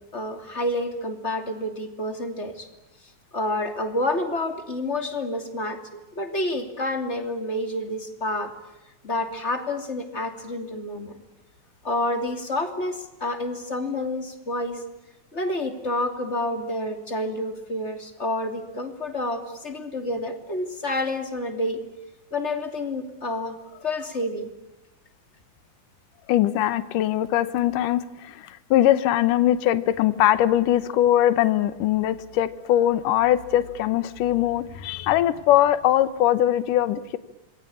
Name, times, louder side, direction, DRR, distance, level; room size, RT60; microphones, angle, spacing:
voice 1, 0.1-2.7 3.3-8.5 9.0-11.2 11.8-14.8 15.3-21.8 22.3-23.6 23.8-24.5, left 1 dB, 20° left, 6 dB, 2.7 m, -29 dB
voice 2, 26.3-37.2, left 12 dB, 75° left, 14 dB, 2.7 m, -21 dB
27.5 x 21.5 x 8.7 m, 0.98 s
omnidirectional pair, 3.9 m